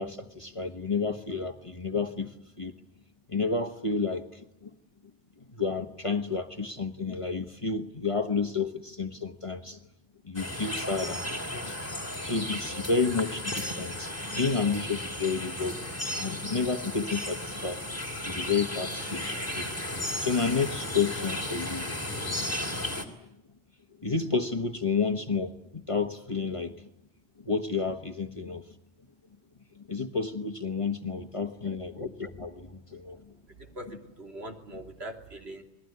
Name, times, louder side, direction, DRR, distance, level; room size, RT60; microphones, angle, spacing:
voice 1, 0.0-2.7 3.3-4.7 5.5-9.8 10.2-11.8 12.2-15.8 16.1-17.9 18.2-19.7 20.0-21.9 22.2-22.7 24.0-26.9 27.4-28.6 29.7-33.3, left 4 dB, 30° left, 7 dB, 1.3 m, -31 dB
sound 1, 10.3-23.0, left 1 dB, 15° left, 3.0 m, -34 dB
voice 2, 31.4-31.8 33.5-35.6, right 1 dB, 65° right, 2 dB, 3.3 m, -43 dB
28.5 x 20.5 x 9.6 m, 0.85 s
omnidirectional pair, 1.1 m